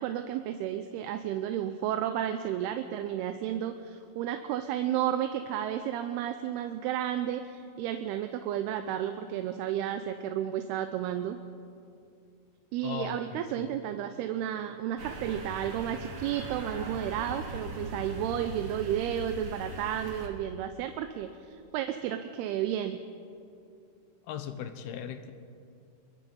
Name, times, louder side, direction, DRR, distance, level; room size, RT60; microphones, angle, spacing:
voice 1, 0.0-11.4 12.7-23.0, right 10 dB, 80° right, 8 dB, 2.7 m, -32 dB
voice 2, 12.8-13.2 13.6-13.7 24.3-25.3, left 9 dB, 75° left, 9 dB, 2.8 m, -37 dB
sound 1, 15.0-20.3, right 2 dB, 45° right, 2.1 m, -40 dB
23.5 x 22.0 x 5.5 m, 2.5 s
omnidirectional pair, 4.7 m